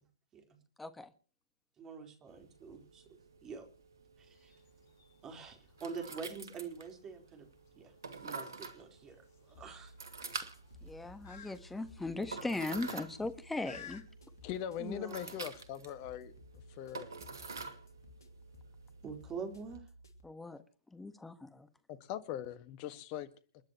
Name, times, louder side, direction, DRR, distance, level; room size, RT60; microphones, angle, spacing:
voice 1, 0.8-1.1 10.8-14.0 20.2-20.6 20.9-21.7, left 2 dB, 5° left, 1.4 m, -39 dB
voice 2, 1.8-3.7 4.2-4.5 5.2-7.5 7.7-9.9 14.8-15.4 19.0-19.8, right 5 dB, 20° right, 4.2 m, -45 dB
sound 1, 2.3-19.8, right 4 dB, 75° right, 2.4 m, -48 dB
sound 2, 4.2-14.0, left 8 dB, 55° left, 3.2 m, -57 dB
sound 3, 9.5-20.2, left 1 dB, 70° left, 3.1 m, -57 dB
voice 3, 14.4-16.3 16.8-17.1 21.9-23.3, left 11 dB, 35° left, 1.7 m, -41 dB
29.0 x 10.5 x 3.1 m
figure-of-eight pair, 120°, 2 cm